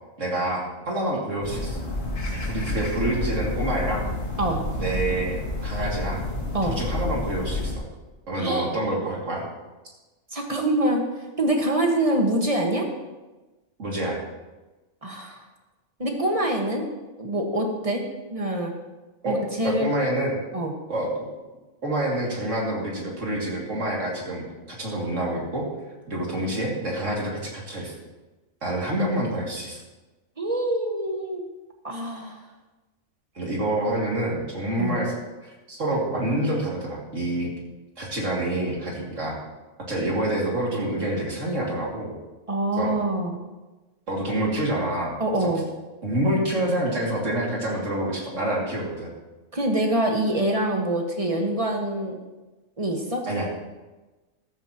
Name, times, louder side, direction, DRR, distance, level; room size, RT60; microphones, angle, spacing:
voice 1, 0.2-1.8 2.5-4.1 4.7-6.2 6.6-7.8 8.3-9.4 13.8-14.2 19.2-20.4 20.9-21.1 21.8-25.7 26.1-27.9 28.6-29.8 33.3-35.1 35.4-37.5 38.0-39.4 39.9-42.1 42.8-42.9 44.1-45.5 46.0-49.1 53.2-53.5, right 1 dB, 65° right, -3 dB, 3.0 m, -27 dB
sound 1, 1.4-7.7, left 2 dB, 70° left, 2.5 m, -29 dB
voice 2, 8.4-8.7 10.3-11.0 11.4-12.9 15.0-15.4 16.0-16.8 17.2-18.0 18.3-18.7 19.2-19.9 20.5-20.7 30.4-31.4 31.8-32.4 34.8-35.0 42.5-43.4 45.2-45.6 49.5-52.1 52.8-53.2, right 1 dB, 25° right, 1 dB, 1.6 m, -25 dB
14.0 x 13.0 x 3.0 m, 1.2 s
omnidirectional pair, 1.4 m